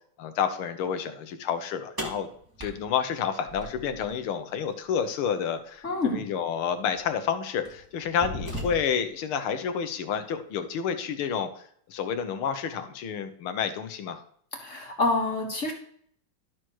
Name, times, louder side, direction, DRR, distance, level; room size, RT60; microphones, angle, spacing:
voice 1, 0.2-2.3 2.6-11.5 11.9-14.2, left 7 dB, 85° left, 9 dB, 1.8 m, -29 dB
sound 1, 2.0-4.1 6.0-6.1 7.0-7.2 7.7-9.1, equal, 10° right, 1.6 m, -37 dB
voice 2, 5.8-6.2 14.6-15.7, left 2 dB, 40° left, 1 dB, 1.8 m, -27 dB
12.5 x 6.2 x 3.1 m, 0.62 s
omnidirectional pair, 2.3 m